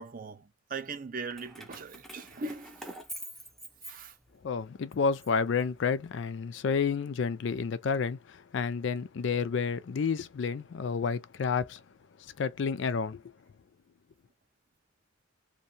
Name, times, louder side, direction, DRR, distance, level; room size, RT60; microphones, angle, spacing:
voice 1, 0.0-2.9 3.8-4.1, right 4 dB, 45° right, 0.5 m, -40 dB
Keys jangling, 1.3-4.5 4.9-6.2, equal, ahead, 0.5 m, -46 dB
voice 2, 4.4-11.8 12.4-13.2, left 5 dB, 60° left, 0.4 m, -30 dB
2.6 x 2.2 x 2.6 m
head